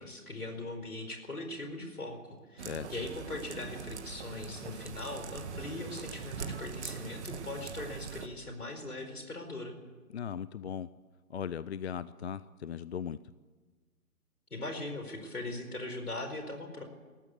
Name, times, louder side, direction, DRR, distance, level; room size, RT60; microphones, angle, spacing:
voice 1, 0.0-9.7 14.5-16.8, left 2 dB, 85° left, 6 dB, 4.7 m, -40 dB
voice 2, 2.6-2.9 10.1-10.9 11.3-13.2, left 8 dB, 50° left, 17 dB, 0.6 m, -38 dB
sound 1, 2.6-8.3, right 5 dB, 50° right, 2.0 m, -42 dB
19.5 x 14.5 x 9.6 m, 1.4 s
figure-of-eight pair, 140°, 44 cm